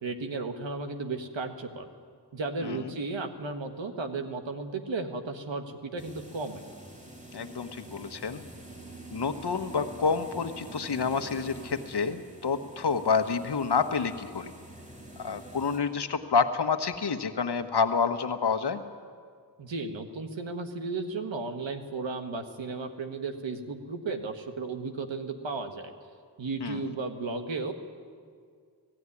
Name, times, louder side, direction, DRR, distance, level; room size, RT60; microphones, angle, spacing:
voice 1, 0.0-1.9 2.3-6.6 19.6-25.9 26.4-27.7, right 3 dB, 90° right, 6 dB, 1.5 m, -34 dB
voice 2, 2.6-2.9 7.3-8.4 9.1-14.5 15.2-18.8 26.6-26.8, left 5 dB, 65° left, 8 dB, 1.3 m, -28 dB
sound 1, 6.0-15.8, right 2 dB, 15° right, 5.2 m, -46 dB
17.0 x 16.0 x 9.8 m, 2.1 s
cardioid pair, 45°, 44 cm